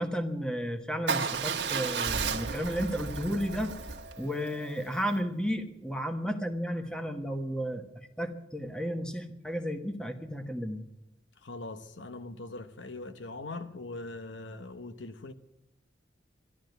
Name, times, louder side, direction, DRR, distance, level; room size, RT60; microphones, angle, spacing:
voice 1, 0.0-3.7 4.2-10.8, equal, 5° left, 1.2 m, -33 dB
Motorcycle / Engine starting / Idling, 1.1-5.2, right 5 dB, 60° right, 1.3 m, -34 dB
voice 2, 11.4-15.3, left 2 dB, 80° left, 0.9 m, -41 dB
13.0 x 12.5 x 8.0 m
head